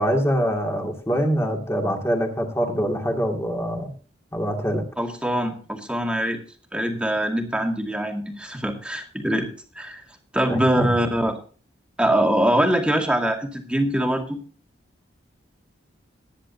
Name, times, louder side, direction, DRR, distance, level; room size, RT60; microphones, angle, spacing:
voice 1, 0.0-3.9 4.3-4.8 10.5-10.9, equal, 15° left, 1 dB, 2.5 m, -24 dB
voice 2, 5.0-6.4 6.7-9.5 9.7-10.0 10.3-11.4 12.0-14.4, right 1 dB, 5° right, 2 dB, 2.2 m, -23 dB
19.5 x 10.5 x 2.8 m, 0.39 s
head